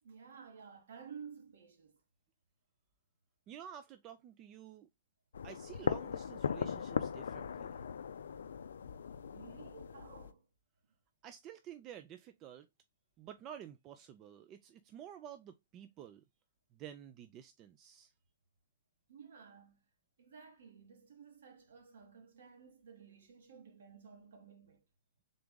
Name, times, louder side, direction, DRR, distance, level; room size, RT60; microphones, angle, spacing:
voice 1, 0.0-2.0 9.2-10.5 19.1-19.8 20.2-24.8, right 6 dB, 65° right, 1.3 m, -54 dB
voice 2, 3.5-4.9 5.4-7.8 11.2-12.7 13.2-16.2 16.7-18.1, right 10 dB, 30° right, 0.4 m, -51 dB
sound 1, 5.3-10.3, left 7 dB, 70° left, 0.4 m, -39 dB
3.8 x 3.4 x 3.6 m
figure-of-eight pair, 115°, 0 cm